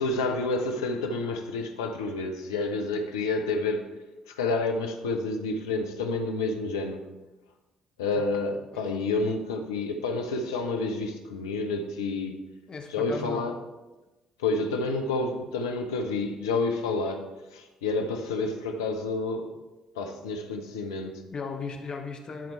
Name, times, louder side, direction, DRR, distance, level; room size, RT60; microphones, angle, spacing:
voice 1, 0.0-3.9 4.3-7.0 8.0-12.4 12.9-13.5 14.4-17.2 17.5-19.5 19.9-21.2, left 3 dB, 75° left, 5 dB, 0.8 m, -29 dB
voice 2, 12.7-13.5 21.3-22.5, left 4 dB, 40° left, 3 dB, 1.0 m, -36 dB
11.5 x 4.4 x 4.5 m, 1.1 s
figure-of-eight pair, 45°, 2 cm